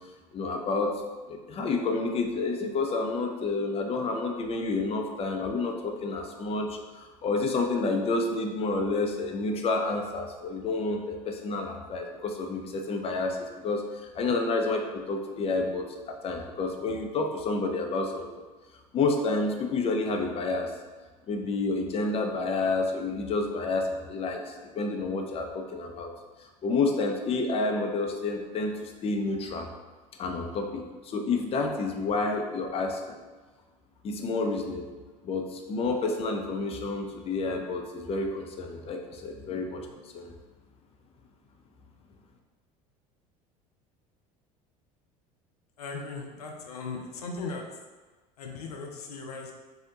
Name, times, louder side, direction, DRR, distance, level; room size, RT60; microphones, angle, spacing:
voice 1, 0.3-1.0 1.3-18.3 18.9-20.7 21.3-26.1 26.6-29.7 30.2-33.2 34.0-34.9 35.2-39.9 40.1-40.3, left 3 dB, 30° left, 3 dB, 0.5 m, -29 dB
voice 2, 45.8-47.6 48.4-49.5, left 4 dB, 85° left, 1 dB, 0.5 m, -38 dB
2.7 x 2.1 x 3.8 m, 1.3 s
hypercardioid pair, 75°, 19 cm